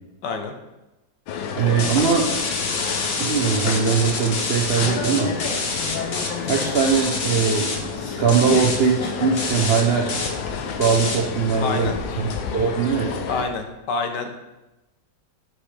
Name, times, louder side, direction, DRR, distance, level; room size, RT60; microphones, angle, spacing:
voice 1, 0.2-0.5 11.6-11.9 13.3-14.4, left 4 dB, 70° left, 5 dB, 1.4 m, -27 dB
sound 1, 1.3-13.4, left 5 dB, 90° left, 1.5 m, -30 dB
voice 2, 1.6-2.3 3.2-5.3 6.5-10.2 10.8-13.2, right 6 dB, 60° right, 0 dB, 0.6 m, -21 dB
sound 2, 1.8-7.8 8.3-8.8 9.4-9.8 10.1-10.3 10.8-11.2, left 3 dB, 50° left, 1.1 m, -27 dB
8.0 x 6.1 x 3.3 m, 1.0 s
omnidirectional pair, 2.0 m